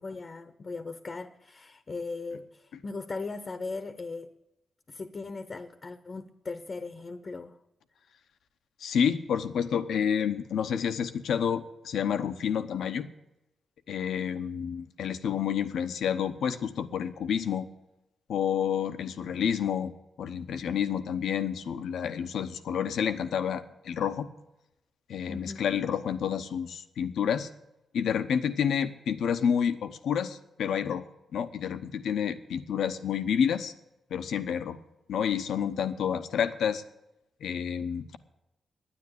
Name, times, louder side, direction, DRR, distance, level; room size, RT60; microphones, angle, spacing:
voice 1, 0.0-4.3 4.9-7.6 25.3-25.6, left 3 dB, 45° left, 0.9 m, -38 dB
voice 2, 8.8-13.1 13.9-17.7 18.3-19.9 20.2-24.3 25.1-27.5 27.9-31.0 31.3-33.7 34.1-34.8 35.1-36.8 37.4-38.2, left 8 dB, 85° left, 0.9 m, -29 dB
9.9 x 9.4 x 9.8 m
cardioid pair, 60°, 0 cm